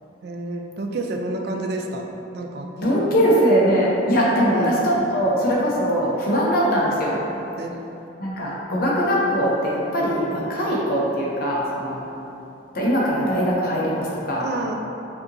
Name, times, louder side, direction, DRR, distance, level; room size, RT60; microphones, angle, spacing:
voice 1, 0.2-2.1 2.3-2.7 4.4-4.7 7.6-7.8 14.4-14.7, right 2 dB, 50° right, 2 dB, 0.3 m, -29 dB
voice 2, 2.8-7.2 8.2-12.0 12.7-14.5, equal, 45° left, -5 dB, 0.7 m, -21 dB
6.4 x 2.8 x 2.6 m, 2.9 s
head